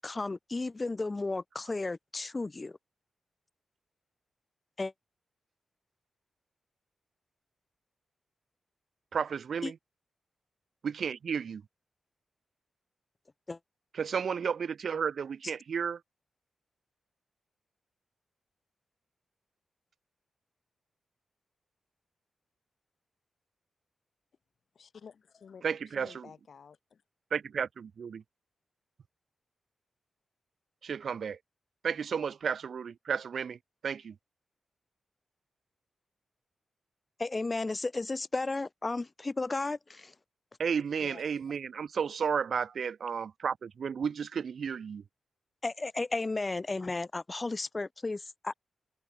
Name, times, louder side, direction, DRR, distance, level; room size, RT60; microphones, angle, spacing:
voice 1, 0.0-2.8 4.8-4.9 9.6-9.7 13.5-13.6 37.2-40.1 45.6-48.5, left 3 dB, 25° left, 0.4 m, -34 dB
voice 2, 9.1-9.8 10.8-11.6 13.9-16.0 25.6-26.3 27.3-28.2 30.8-31.4 31.8-34.2 40.6-45.0, right 6 dB, 65° right, 0.5 m, -33 dB
voice 3, 24.7-27.0 41.0-41.3, left 6 dB, 65° left, 0.8 m, -51 dB
cardioid pair, 95°, 0 cm